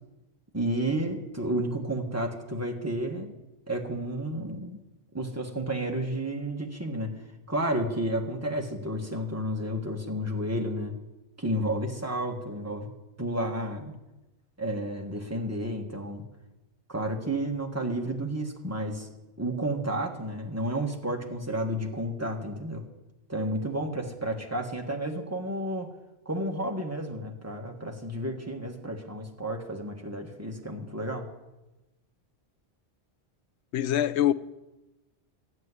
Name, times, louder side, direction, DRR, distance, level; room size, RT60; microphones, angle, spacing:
voice 1, 0.5-3.3 3.7-4.8 5.1-7.2 7.5-10.9 11.4-12.9 13.2-13.9 14.6-16.3 16.9-19.1 19.4-22.9 23.3-25.9 26.2-31.3, right 1 dB, 15° right, 1.4 m, -31 dB
voice 2, 33.7-34.3, left 11 dB, 85° left, 0.9 m, -24 dB
13.5 x 6.4 x 9.6 m
omnidirectional pair, 1.1 m